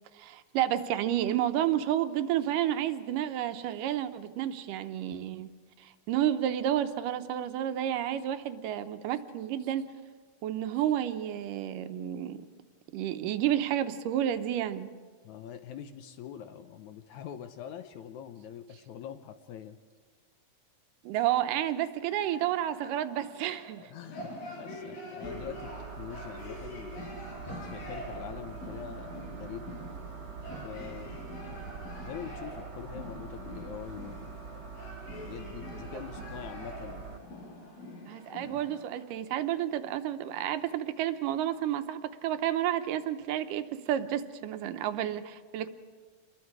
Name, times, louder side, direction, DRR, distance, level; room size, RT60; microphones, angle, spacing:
voice 1, 0.1-5.5 5.8-9.9 10.4-12.5 12.9-14.9 21.0-23.9 38.1-45.7, right 11 dB, 75° right, 10 dB, 2.3 m, -30 dB
voice 2, 15.2-19.8 23.9-27.1 27.7-29.8 30.6-31.2 32.0-34.6 35.3-37.2 38.4-38.6, left 9 dB, 70° left, 9 dB, 2.0 m, -44 dB
sound 1, 22.1-39.0, left 1 dB, 90° left, 7.2 m, -45 dB
sound 2, 25.2-37.2, right 5 dB, 35° right, 1.6 m, -44 dB
sound 3, 27.1-32.4, right 1 dB, 30° left, 0.3 m, -51 dB
28.0 x 21.5 x 4.8 m, 1.5 s
omnidirectional pair, 4.0 m